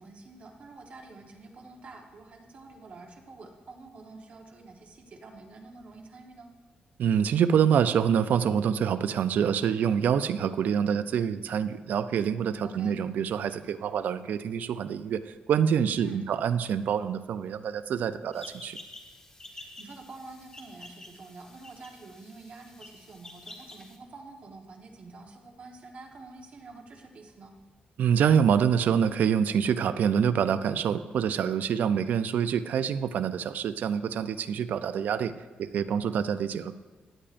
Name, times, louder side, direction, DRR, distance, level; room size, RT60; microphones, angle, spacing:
voice 1, 0.0-6.5 12.6-13.0 16.0-16.4 19.4-27.6, right 3 dB, 45° right, 3 dB, 1.2 m, -48 dB
voice 2, 7.0-18.8 28.0-35.3 35.6-36.8, right 8 dB, 70° right, 12 dB, 0.4 m, -26 dB
sound 1, 18.3-24.0, left 2 dB, 20° left, 1.2 m, -49 dB
15.5 x 9.9 x 2.5 m, 1.3 s
cardioid pair, 135°, 3 cm